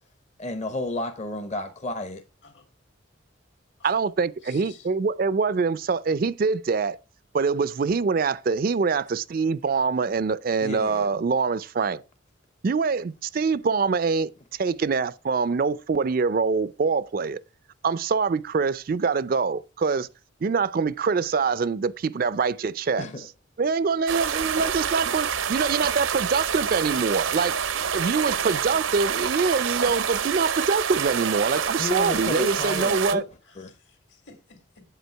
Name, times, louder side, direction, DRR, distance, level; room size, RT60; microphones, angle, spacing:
voice 1, 0.4-2.2 10.6-11.1 23.0-23.3 24.6-24.7 31.8-33.2 33.6-33.7, left 2 dB, 35° left, 0.7 m, -32 dB
voice 2, 3.8-7.0 7.3-12.0 12.6-17.4 17.8-20.1 20.4-23.1 23.6-27.6 27.9-33.3, right 5 dB, 45° right, 0.4 m, -24 dB
voice 3, 4.4-4.8 33.4-34.8, left 5 dB, 70° left, 2.5 m, -52 dB
sound 1, 24.1-33.1, right 7 dB, 85° right, 0.7 m, -27 dB
8.2 x 8.1 x 4.5 m
head